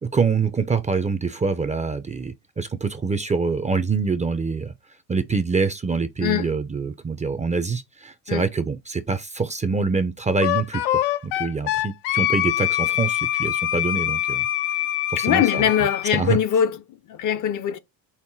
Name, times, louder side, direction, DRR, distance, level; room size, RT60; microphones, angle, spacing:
voice 1, 0.0-4.7 5.1-14.5 15.1-15.9 16.1-16.4, right 4 dB, 15° right, 0.5 m, -25 dB
voice 2, 6.2-6.5 8.3-8.5 15.2-17.8, left 9 dB, 45° left, 0.6 m, -22 dB
Wind instrument woodwind instrument, 10.4-16.1, left 14 dB, 80° left, 0.7 m, -24 dB
5.6 x 2.1 x 4.5 m
supercardioid pair, 90°, 42 cm